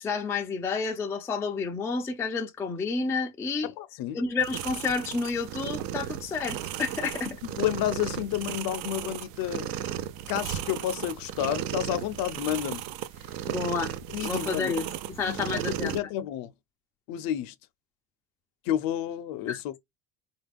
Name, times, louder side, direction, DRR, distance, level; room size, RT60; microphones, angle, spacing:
voice 1, 0.0-3.7 4.1-7.4 13.5-13.9 14.2-14.9 15.2-16.0 19.5-19.6, left 4 dB, 5° left, 0.3 m, -30 dB
voice 2, 3.6-4.2 7.5-9.7 10.3-12.8 14.1-14.7 15.3-16.5 17.1-17.5 18.7-19.8, left 12 dB, 60° left, 0.5 m, -30 dB
sound 1, 4.4-16.0, right 12 dB, 60° right, 0.5 m, -35 dB
4.1 x 2.4 x 3.4 m
cardioid pair, 150°, 41 cm